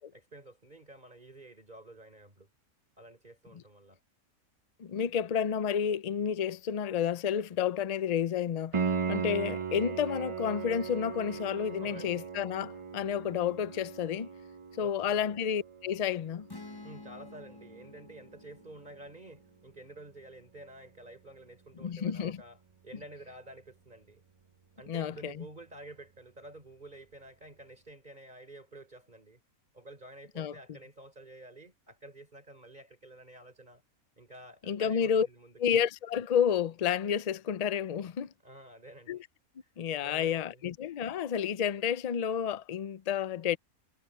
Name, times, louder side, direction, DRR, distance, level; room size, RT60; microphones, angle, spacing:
voice 1, 0.1-2.5 3.0-4.0 11.8-12.3 14.8-15.3 16.8-22.6 22.8-24.2 24.8-29.4 29.7-33.8 34.2-35.6 38.4-39.2 39.6-39.7 40.0-40.6, right 1 dB, 30° right, 4.4 m, -50 dB
voice 2, 4.8-8.8 9.1-14.3 14.8-16.5 21.8-22.4 24.9-25.4 30.4-30.5 34.7-35.3 35.6-38.3 39.1-39.2 39.8-43.6, left 8 dB, 80° left, 0.3 m, -30 dB
Piano, 8.7-19.4 22.7-22.8, right 6 dB, 50° right, 0.3 m, -38 dB
sound 1, 16.5-20.2, left 2 dB, 20° left, 1.1 m, -51 dB
omnidirectional pair, 1.5 m